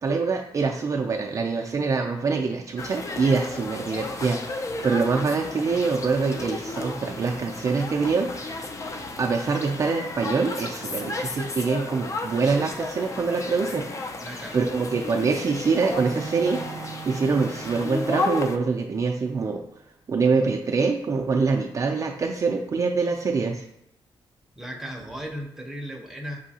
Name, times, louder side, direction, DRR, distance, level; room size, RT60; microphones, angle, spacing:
voice 1, 0.0-8.7 9.2-14.2 14.5-19.6 20.1-23.6, right 4 dB, 35° right, 1 dB, 0.3 m, -25 dB
sound 1, 2.8-18.6, left 3 dB, 35° left, 0.4 m, -33 dB
voice 2, 14.2-15.0 24.6-26.4, equal, 5° right, 0 dB, 0.6 m, -36 dB
Bowed string instrument, 16.0-18.9, right 6 dB, 80° right, 0.6 m, -40 dB
6.6 x 2.7 x 2.7 m, 0.79 s
wide cardioid pair, 135°, 9 cm